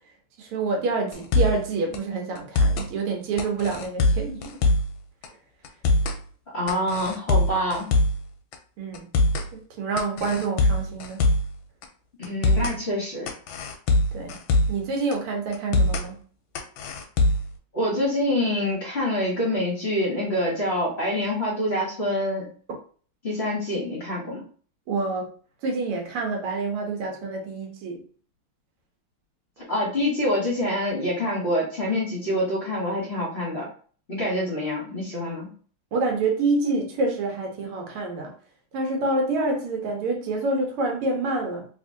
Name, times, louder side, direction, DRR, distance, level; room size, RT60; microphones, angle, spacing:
voice 1, 0.4-4.6 8.8-9.1 9.5-11.2 14.1-14.4 14.7-16.2 24.9-25.3 25.6-28.0 35.9-38.3 38.7-41.7, right 3 dB, 85° right, 1.8 m, -27 dB
sound 1, 1.1-1.6 1.9-2.0 2.3-2.9 3.4-4.9 5.2-5.3 5.6-6.2 6.7-8.2 8.5-8.6 8.9-9.5 10.0-11.5 11.8-11.9 12.2-12.8 13.3-14.8 15.1-15.2 15.5-16.1 16.5-17.5, left 2 dB, 75° left, 1.3 m, -22 dB
voice 2, 6.5-7.9 12.2-13.3 17.7-22.5 23.2-24.4 29.7-33.7 34.1-35.5, left 1 dB, 40° left, 1.0 m, -26 dB
3.5 x 2.9 x 2.6 m
omnidirectional pair, 2.4 m